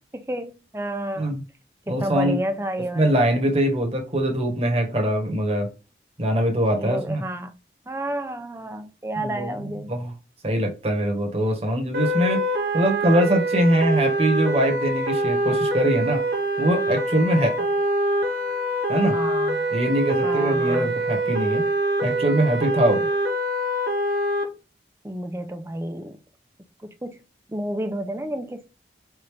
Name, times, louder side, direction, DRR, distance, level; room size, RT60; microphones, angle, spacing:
voice 1, 0.1-1.4 1.9-3.1 6.8-7.5 7.9-9.9 19.1-19.6 20.2-20.9 25.0-26.2 26.8-27.2 27.5-28.7, right 1 dB, 15° right, 0.5 m, -30 dB
voice 2, 1.9-2.4 3.0-5.7 6.2-7.3 9.2-10.1 10.4-12.4 12.7-16.2 16.6-17.5 18.9-19.1 19.7-21.6 22.0-23.1, right 1 dB, 35° right, 1.1 m, -22 dB
sound 1, 11.9-24.4, right 1 dB, 55° right, 1.0 m, -24 dB
4.8 x 2.6 x 3.3 m
head